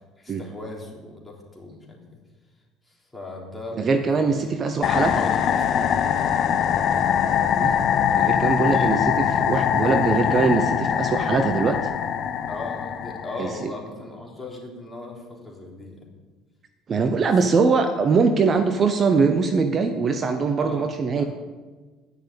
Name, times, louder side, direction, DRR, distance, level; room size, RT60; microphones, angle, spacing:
voice 1, 0.2-2.2 2.8-6.2 8.7-9.0 12.5-16.1 17.5-17.6 20.6-21.3, left 2 dB, 10° left, -2 dB, 3.4 m, -38 dB
voice 2, 3.8-5.2 7.6-7.7 8.1-9.0 9.4-11.8 13.4-13.7 16.9-21.2, right 4 dB, 40° right, 7 dB, 0.9 m, -22 dB
sound 1, 4.8-13.6, left 8 dB, 55° left, 0.8 m, -22 dB
11.0 x 6.4 x 8.3 m, 1.3 s
supercardioid pair, 90°, 0 cm